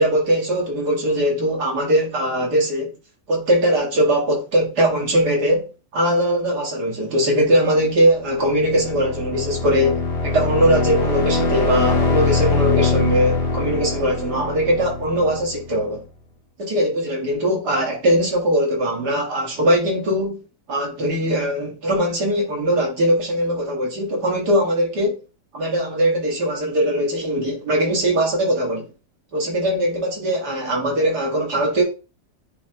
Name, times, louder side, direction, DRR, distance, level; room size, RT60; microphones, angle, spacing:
voice 1, 0.0-2.9 3.3-16.0 16.6-20.4 20.7-25.2 25.5-28.9 29.3-31.8, equal, 65° right, 2.6 m, -20 dB
sound 1, 8.1-15.9, left 3 dB, 70° left, 1.8 m, -23 dB
9.2 x 3.4 x 3.0 m
omnidirectional pair, 1.9 m